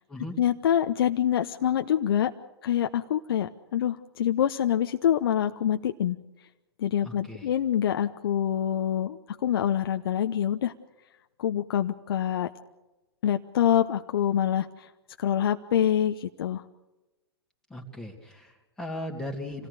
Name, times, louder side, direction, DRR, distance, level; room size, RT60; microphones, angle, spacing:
voice 1, 0.4-2.3 2.6-6.2 6.8-10.7 11.4-12.5 13.2-14.9 15.2-16.6, left 10 dB, 60° left, 7 dB, 1.0 m, -26 dB
voice 2, 7.0-7.5 17.7-19.7, left 1 dB, 5° left, 0 dB, 2.7 m, -37 dB
27.5 x 17.5 x 6.8 m, 1.0 s
figure-of-eight pair, 110°, 14 cm